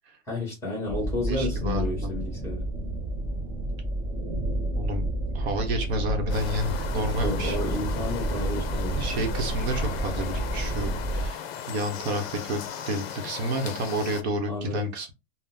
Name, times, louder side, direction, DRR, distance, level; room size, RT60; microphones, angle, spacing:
voice 1, 0.3-2.7 7.2-9.0 14.5-14.9, left 2 dB, 5° left, 1.0 m, -31 dB
sound 1, 0.9-11.3, right 1 dB, 20° right, 0.5 m, -30 dB
voice 2, 1.3-2.1 4.7-5.1 5.3-7.6 9.0-15.1, right 1 dB, 55° right, 0.9 m, -30 dB
sound 2, 6.3-14.2, left 9 dB, 50° left, 0.5 m, -37 dB
3.6 x 2.1 x 2.6 m
supercardioid pair, 175°, 39 cm